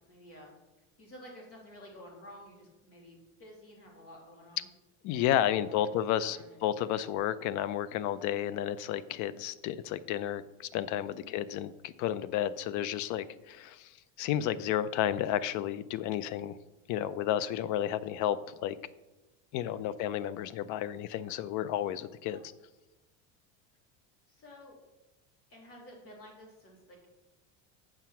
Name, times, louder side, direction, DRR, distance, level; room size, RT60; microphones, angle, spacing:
voice 1, 0.1-0.5 1.0-4.7 5.3-5.9 6.2-6.7 8.1-8.4 11.0-11.3 19.7-19.9 22.3-22.4 24.3-24.8 25.5-27.1, left 1 dB, 40° left, -1 dB, 3.0 m, -52 dB
voice 2, 5.0-16.6 16.9-18.8 19.5-22.4, left 11 dB, 55° left, 17 dB, 0.5 m, -32 dB
7.7 x 6.0 x 5.8 m, 1.1 s
cardioid pair, 145°, 37 cm